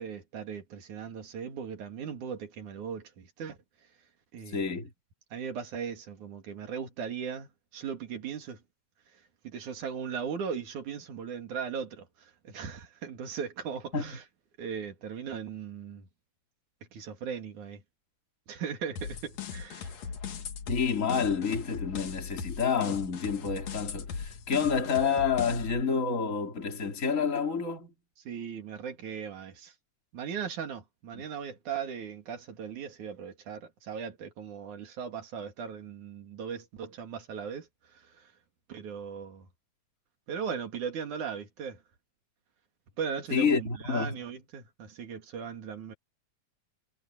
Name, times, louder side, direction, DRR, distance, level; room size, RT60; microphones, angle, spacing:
voice 1, 0.0-3.6 4.3-4.7 5.3-8.6 9.4-14.2 14.6-16.1 16.9-17.8 18.5-20.1 28.3-29.7 30.1-38.3 38.7-39.5 40.3-41.8 43.0-45.9, right 7 dB, 90° right, 3.9 m, -38 dB
voice 2, 4.5-4.9 13.9-14.1 20.7-27.9 31.1-31.2 43.3-44.2, left 6 dB, 25° left, 3.5 m, -29 dB
sound 1, 19.0-25.8, left 6 dB, 65° left, 3.1 m, -39 dB
omnidirectional pair, 3.4 m